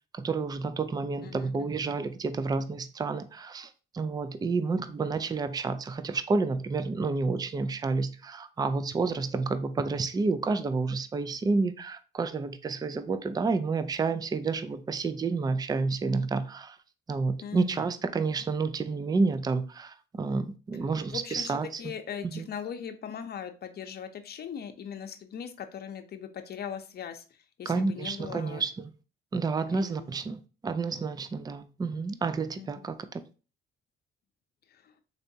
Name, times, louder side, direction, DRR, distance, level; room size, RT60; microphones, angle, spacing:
voice 1, 0.1-16.8 17.1-21.9 22.2-22.5 27.7-28.9 29.3-33.2, right 4 dB, 20° right, 0.4 m, -30 dB
voice 2, 1.2-1.7 17.4-17.8 21.1-27.2 27.6-28.6 29.7-30.1 32.6-32.7 34.7-34.9, left 8 dB, 55° left, 0.7 m, -40 dB
3.9 x 3.3 x 2.7 m
cardioid pair, 90°, 20 cm